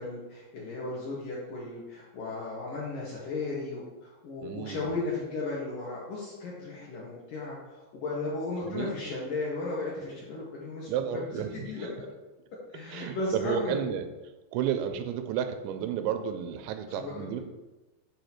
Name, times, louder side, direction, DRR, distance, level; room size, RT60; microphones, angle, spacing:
voice 1, 0.0-11.9 12.7-13.8 16.9-17.3, left 3 dB, 70° left, -6 dB, 2.1 m, -35 dB
voice 2, 4.4-4.9 8.6-8.9 10.9-11.9 12.9-14.1 14.5-17.4, right 9 dB, 90° right, 8 dB, 2.8 m, -32 dB
7.5 x 2.8 x 5.9 m, 1.1 s
omnidirectional pair, 5.1 m